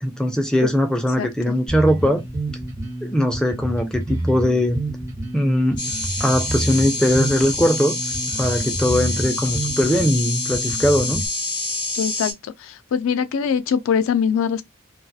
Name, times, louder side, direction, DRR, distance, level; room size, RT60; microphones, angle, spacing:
voice 1, 0.0-2.2 3.0-4.8 5.3-5.8 6.2-8.0 8.4-11.2, equal, 5° left, 0.4 m, -20 dB
voice 2, 1.2-1.6 11.9-14.6, left 7 dB, 85° left, 0.3 m, -23 dB
Bass guitar, 1.7-11.3, right 1 dB, 15° right, 0.7 m, -29 dB
sound 1, 5.8-12.3, left 2 dB, 40° left, 1.2 m, -27 dB
2.6 x 2.2 x 2.3 m
head